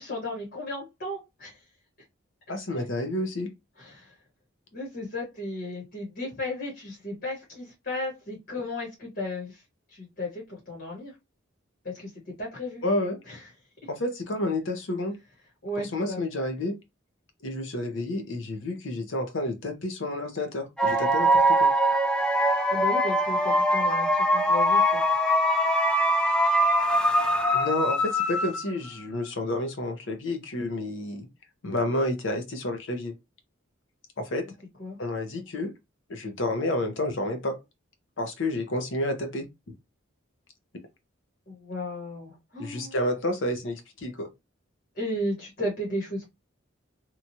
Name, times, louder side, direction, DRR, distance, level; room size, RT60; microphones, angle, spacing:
voice 1, 0.0-1.6 2.7-2.8 3.8-4.1 4.7-9.6 9.9-11.1 11.8-12.1 12.4-12.8 13.3-13.4 15.6-16.2 22.7-25.0 34.8-35.0 41.5-43.0 44.9-46.3, left 1 dB, 50° left, 1.1 m, -34 dB
voice 2, 2.5-3.5 12.8-13.2 13.9-15.2 15.8-16.8 17.4-21.7 27.5-31.3 31.6-33.1 34.2-34.4 35.0-35.7 36.1-37.6 38.2-39.4 42.6-44.3, left 1 dB, 70° left, 0.7 m, -30 dB
sound 1, 20.8-28.9, equal, 5° left, 0.3 m, -22 dB
2.9 x 2.3 x 2.7 m
head